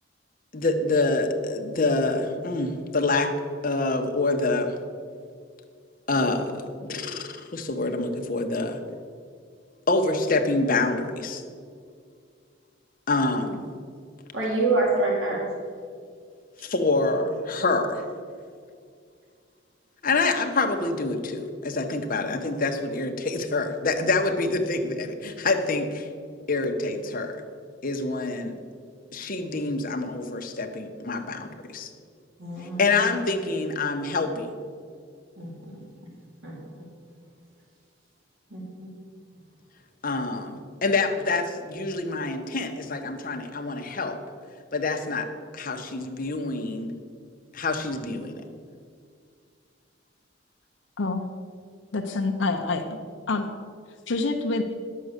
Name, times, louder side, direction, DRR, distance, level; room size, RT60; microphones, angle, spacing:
voice 1, 0.5-3.3 3.6-4.8 6.1-8.8 9.9-11.4 13.1-13.6 16.6-18.0 20.0-26.1 26.5-27.4 27.8-28.6 29.1-31.9 32.8-34.5 40.0-44.2 44.7-45.3 45.5-46.9 47.5-48.4, left 3 dB, 45° left, 4 dB, 1.1 m, -26 dB
voice 2, 14.3-15.5 32.4-32.8 35.4-35.8 36.4-36.8 38.5-38.9, right 2 dB, 90° right, -3 dB, 2.6 m, -27 dB
voice 3, 51.9-53.0 53.3-53.5 54.1-54.6, left 3 dB, 75° left, 4 dB, 0.7 m, -26 dB
11.0 x 7.5 x 6.6 m, 2.2 s
head